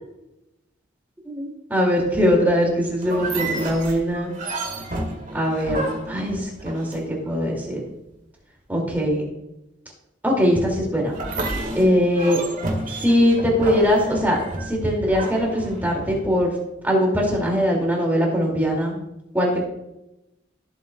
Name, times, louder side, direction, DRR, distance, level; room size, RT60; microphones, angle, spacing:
voice 1, 1.2-4.3 5.3-7.8 8.7-9.2 10.2-11.2 11.7-12.4 12.9-14.4 14.7-16.5 16.8-19.0 19.3-19.6, equal, 10° right, -2 dB, 2.6 m, -21 dB
sound 1, 3.0-7.3 11.1-16.2, right 2 dB, 45° right, 1.9 m, -31 dB
14.5 x 7.8 x 2.4 m, 0.90 s
head